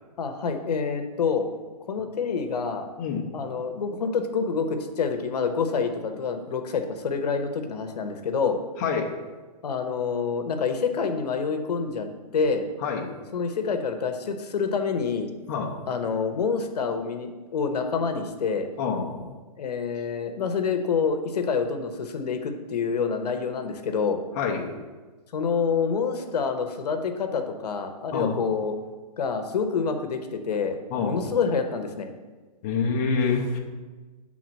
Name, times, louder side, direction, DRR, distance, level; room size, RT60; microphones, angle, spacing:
voice 1, 0.2-1.5 1.9-2.9 3.3-8.6 9.6-12.1 12.3-12.7 13.3-15.3 15.9-18.7 19.6-24.2 25.3-28.8 29.2-32.1, left 5 dB, 80° left, 6 dB, 0.9 m, -27 dB
voice 2, 3.0-3.3 8.8-9.1 12.8-13.1 15.5-15.8 18.8-19.2 24.4-24.7 28.1-28.4 30.9-31.3 32.6-33.6, left 5 dB, 25° left, 0 dB, 0.7 m, -26 dB
7.5 x 3.8 x 6.2 m, 1.3 s
hypercardioid pair, 165°, 20 cm